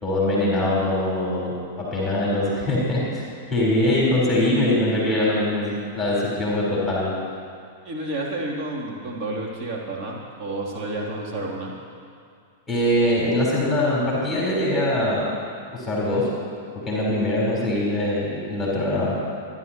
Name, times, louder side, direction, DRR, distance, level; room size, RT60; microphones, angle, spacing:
voice 1, 0.0-3.2 3.5-7.1 12.7-15.3 15.7-16.3 16.7-19.2, left 1 dB, 15° left, -5 dB, 3.9 m, -22 dB
voice 2, 7.8-11.7, right 2 dB, 35° right, -3 dB, 2.9 m, -30 dB
26.5 x 11.0 x 2.9 m, 2.4 s
figure-of-eight pair, 95°, 0 cm